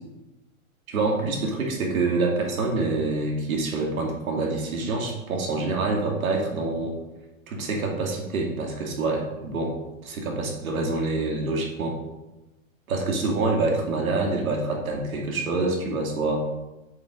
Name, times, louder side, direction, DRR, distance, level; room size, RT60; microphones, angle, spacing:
voice 1, 0.9-7.0 7.5-9.7 10.0-12.0 12.9-16.5, right 3 dB, 80° right, 0 dB, 2.4 m, -26 dB
7.0 x 5.8 x 4.0 m, 1.0 s
hypercardioid pair, 140°, 42 cm